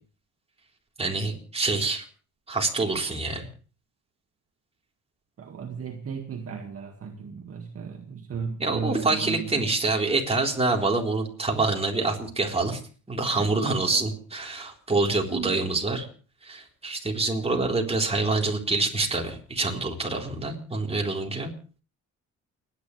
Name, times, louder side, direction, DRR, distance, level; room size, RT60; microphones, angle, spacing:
voice 1, 1.0-2.0 2.5-3.5 8.6-12.8 13.1-16.1 16.4-21.5, right 3 dB, 20° right, 0 dB, 3.9 m, -26 dB
voice 2, 5.4-9.7 13.4-14.0 15.3-15.6, right 6 dB, 50° right, 3 dB, 2.0 m, -35 dB
30.0 x 10.5 x 3.3 m, 0.40 s
cardioid pair, 90°, 30 cm